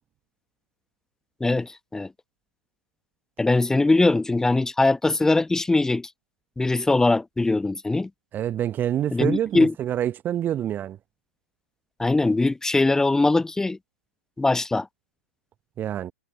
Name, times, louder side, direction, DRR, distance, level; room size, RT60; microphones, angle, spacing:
voice 1, 1.4-2.1 3.4-6.1 6.6-8.1 9.1-9.7 12.0-13.8 14.4-14.9, left 2 dB, 5° left, 1.0 m, -21 dB
voice 2, 8.3-11.0 15.8-16.1, right 11 dB, 25° right, 0.9 m, -26 dB
figure-of-eight pair, 105°, 8 cm